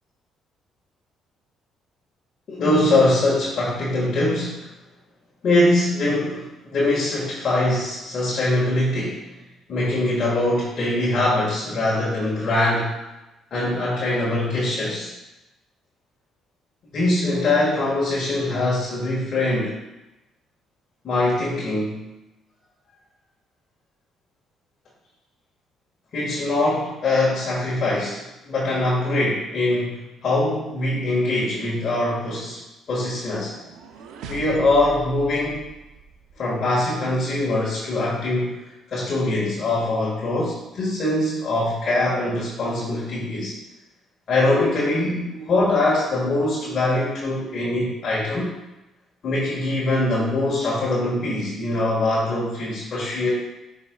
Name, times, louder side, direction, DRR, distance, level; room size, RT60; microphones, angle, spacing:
voice 1, 2.5-4.7 5.4-9.2 9.7-12.9 13.5-15.1 16.9-19.7 21.0-22.0 26.1-32.6 32.9-33.6 34.3-35.7 36.4-38.6 38.9-43.5 44.3-48.5 49.2-53.3, left 2 dB, 55° left, -6 dB, 1.7 m, -22 dB
sound 1, 33.4-36.5, right 2 dB, 85° right, 0.6 m, -40 dB
8.9 x 5.3 x 2.3 m, 0.99 s
supercardioid pair, 75°, 0 cm